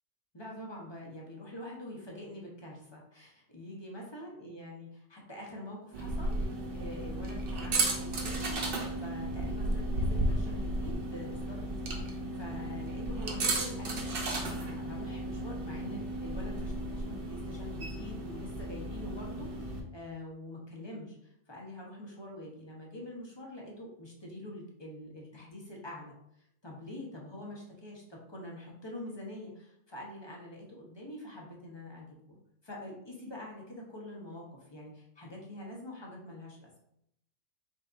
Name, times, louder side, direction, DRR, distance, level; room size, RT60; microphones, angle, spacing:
voice 1, 0.3-32.4 32.6-36.7, left 1 dB, 25° left, -2 dB, 0.8 m, -45 dB
sound 1, 5.9-19.8, right 1 dB, 55° right, 0.8 m, -34 dB
4.1 x 3.7 x 2.5 m, 0.77 s
omnidirectional pair, 1.3 m